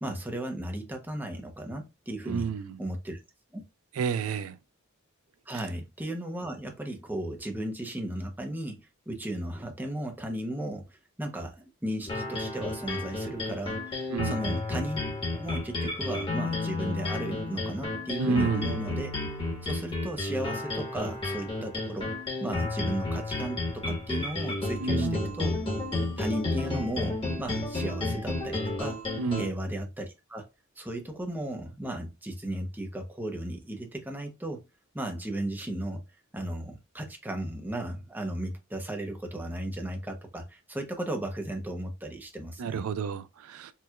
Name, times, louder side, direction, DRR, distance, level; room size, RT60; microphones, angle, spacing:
voice 1, 0.0-2.5 2.8-3.2 3.5-3.6 5.5-8.8 9.1-15.0 15.3-19.1 19.6-22.1 22.4-25.6 26.2-29.0 29.3-30.5 30.8-34.6 34.9-36.0 36.3-42.8, right 1 dB, 10° right, 0.6 m, -35 dB
voice 2, 2.3-2.8 3.9-4.6 14.1-14.4 18.2-18.7 24.8-25.3 29.2-29.5 42.6-43.7, right 5 dB, 70° right, 0.3 m, -30 dB
sound 1, 12.1-29.5, left 2 dB, 25° left, 1.0 m, -32 dB
4.4 x 2.3 x 2.3 m
head